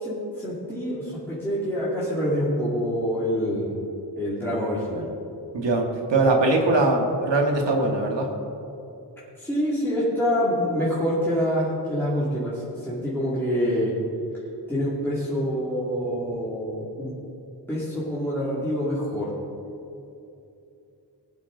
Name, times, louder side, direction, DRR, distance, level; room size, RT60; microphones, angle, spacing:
voice 1, 0.0-3.7 4.2-5.0 9.4-13.9 14.7-17.1 17.7-19.3, equal, 5° left, -9 dB, 2.6 m, -26 dB
voice 2, 5.5-8.3, right 2 dB, 90° right, 2 dB, 2.0 m, -21 dB
19.5 x 8.7 x 4.0 m, 2.7 s
wide cardioid pair, 130°, 42 cm